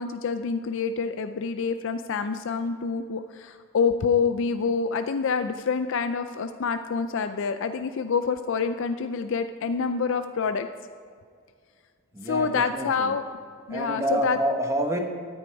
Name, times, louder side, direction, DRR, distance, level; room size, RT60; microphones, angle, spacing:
voice 1, 0.0-10.7 12.2-13.2 13.7-14.4, left 5 dB, 60° left, 9 dB, 0.4 m, -27 dB
voice 2, 12.1-13.2 13.7-15.0, right 1 dB, 15° right, 3 dB, 1.1 m, -28 dB
13.5 x 9.3 x 4.7 m, 2.1 s
head